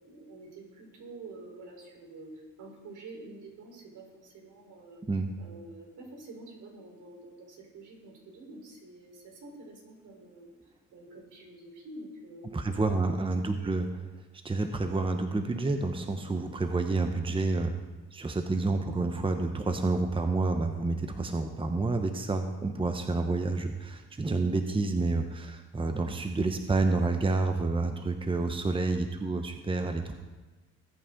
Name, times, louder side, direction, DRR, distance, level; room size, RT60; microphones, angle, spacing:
voice 1, 0.0-5.0 5.4-10.5 10.9-13.1 13.4-13.9, right 2 dB, 75° right, 0 dB, 4.2 m, -48 dB
voice 2, 12.5-13.9 14.4-17.7 18.1-30.1, right 3 dB, 15° right, 5 dB, 1.0 m, -29 dB
20.0 x 8.8 x 3.8 m, 1.2 s
cardioid pair, 90°, 30 cm